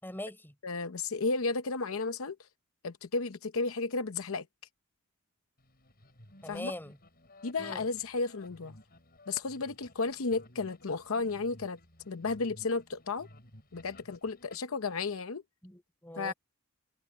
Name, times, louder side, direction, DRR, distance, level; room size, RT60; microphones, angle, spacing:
voice 1, 0.0-0.5 6.4-7.0 7.6-7.8 15.6-16.3, left 1 dB, 10° left, 4.3 m, -42 dB
voice 2, 0.6-2.4 2.8-4.4 6.5-6.7 7.4-8.8 9.3-11.8 12.1-13.3 13.7-15.4 16.2-16.3, left 3 dB, 70° left, 0.8 m, -33 dB
sound 1, 5.6-14.6, left 1 dB, 45° left, 7.1 m, -56 dB
head